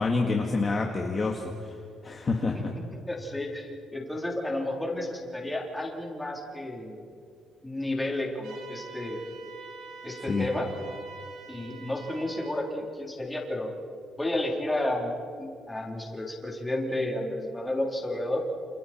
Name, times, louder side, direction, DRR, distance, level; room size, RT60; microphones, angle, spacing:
voice 1, 0.0-1.7 2.0-2.7 10.3-10.5, left 3 dB, 25° left, 1 dB, 1.8 m, -27 dB
voice 2, 3.1-7.0 7.6-9.2 10.0-10.7 11.5-13.7 14.2-18.4, left 1 dB, 10° left, -1 dB, 3.8 m, -32 dB
sound 1, 8.4-12.6, right 4 dB, 80° right, 7.1 m, -45 dB
29.0 x 29.0 x 4.5 m, 2.2 s
cardioid pair, 155°, 0 cm